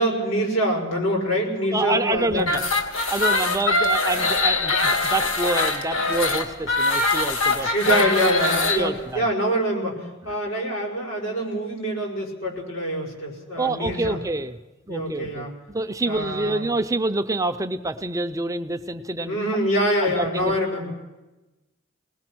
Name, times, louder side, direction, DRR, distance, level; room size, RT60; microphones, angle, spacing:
voice 1, 0.0-2.5 7.6-14.2 14.9-15.5 16.0-16.6 19.3-20.9, equal, 85° left, -1 dB, 5.8 m, -25 dB
voice 2, 1.7-2.6 3.1-8.0 8.7-9.2 10.3-10.4 13.5-14.6 14.9-15.5 15.7-19.4 20.0-20.6, right 2 dB, 15° right, 9 dB, 0.6 m, -27 dB
sound 1, 2.4-8.8, left 3 dB, 70° left, 2.3 m, -22 dB
24.0 x 19.0 x 6.2 m, 1.1 s
head